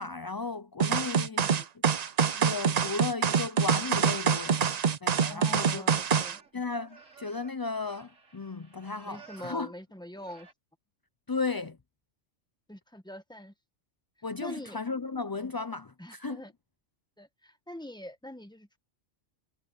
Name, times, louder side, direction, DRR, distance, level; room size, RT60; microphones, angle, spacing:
voice 1, 0.0-1.4 2.3-5.9 6.5-9.7 11.3-11.8 14.2-16.4, left 4 dB, 35° left, 0.3 m, -35 dB
sound 1, 0.8-6.4, right 7 dB, 45° right, 0.5 m, -26 dB
voice 2, 1.3-1.7 5.3-6.4 9.0-10.5 12.7-13.5 14.4-14.8 16.0-16.5 17.2-18.8, left 1 dB, 5° left, 1.2 m, -44 dB
sound 2, 5.4-9.7 10.1-10.5, right 5 dB, 85° right, 3.7 m, -55 dB
omnidirectional pair, 1.3 m